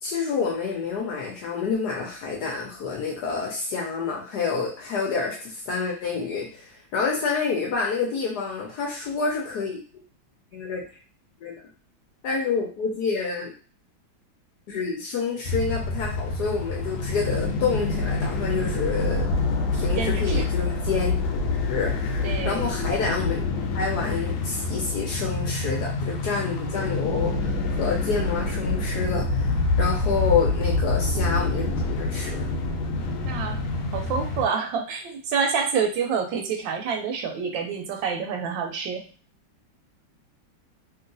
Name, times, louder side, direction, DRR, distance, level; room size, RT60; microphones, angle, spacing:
voice 1, 0.0-9.8 10.5-10.8 11.4-11.7 12.2-13.5 14.7-19.3 19.7-21.2 21.7-23.5 23.7-32.4, left 5 dB, 70° left, -1 dB, 1.1 m, -28 dB
sound 1, 15.4-34.4, left 3 dB, 85° left, 1.4 m, -26 dB
voice 2, 20.0-20.4 22.2-22.7 33.3-33.6 33.9-39.1, right 6 dB, 80° right, 4 dB, 1.3 m, -27 dB
3.0 x 2.8 x 2.5 m, 0.38 s
omnidirectional pair, 2.1 m